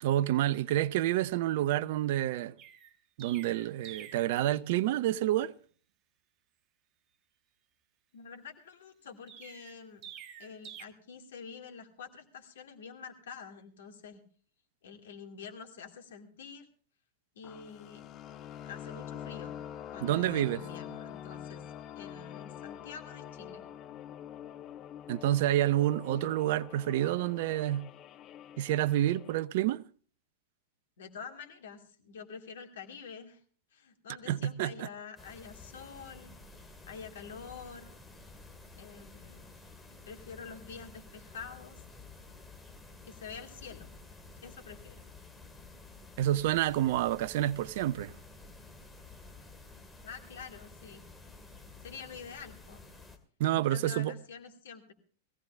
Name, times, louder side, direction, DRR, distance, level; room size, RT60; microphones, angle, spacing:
voice 1, 0.0-2.5 3.2-5.5 20.0-20.6 25.1-27.8 28.6-29.8 34.3-34.9 46.2-48.1 53.4-54.1, right 13 dB, 55° right, 0.6 m, -28 dB
Chirp tweet, 2.6-4.4 9.3-10.8, right 9 dB, 40° right, 1.3 m, -48 dB
voice 2, 8.1-10.0 10.4-14.2 14.8-16.7 17.4-18.1 18.6-19.6 19.9-21.6 22.0-23.6 31.0-33.4 33.7-36.3 36.9-37.9 38.8-39.5 40.1-41.8 43.0-43.9 44.4-45.0 50.0-51.0 51.8-52.8 53.7-54.9, left 6 dB, 65° left, 2.4 m, -47 dB
sound 1, 17.4-29.4, left 10 dB, 35° left, 0.9 m, -45 dB
sound 2, 35.2-53.2, left 3 dB, 10° left, 2.2 m, -52 dB
21.5 x 16.0 x 2.5 m
figure-of-eight pair, 100°, 0 cm